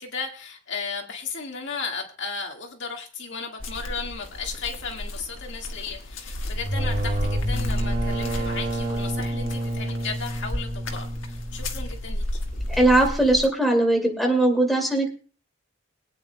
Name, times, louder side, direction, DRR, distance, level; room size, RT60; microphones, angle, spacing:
voice 1, 0.0-12.2, left 5 dB, 65° left, 2 dB, 1.8 m, -35 dB
sound 1, 3.6-13.5, left 1 dB, 80° left, 1.5 m, -32 dB
sound 2, 6.5-12.1, right 1 dB, 40° right, 2.3 m, -29 dB
voice 2, 12.8-15.1, right 1 dB, ahead, 0 dB, 2.3 m, -20 dB
24.0 x 9.0 x 2.2 m, 0.39 s
head